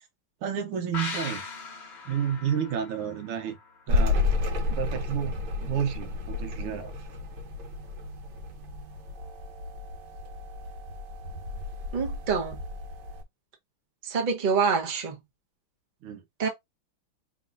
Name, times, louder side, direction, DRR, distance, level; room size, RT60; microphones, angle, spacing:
voice 1, 0.4-1.4 2.1-3.6 3.9-4.2 4.7-6.9 16.0-16.2, right 8 dB, 85° right, 1.8 m, -31 dB
sound 1, 0.9-4.4 4.7-4.8, left 4 dB, 40° left, 1.1 m, -39 dB
sound 2, 3.9-13.2, left 3 dB, 70° right, 1.7 m, -31 dB
voice 2, 11.9-12.6 14.0-15.2 16.4-16.5, right 5 dB, 30° right, 1.0 m, -26 dB
4.6 x 3.4 x 2.6 m
omnidirectional pair, 2.3 m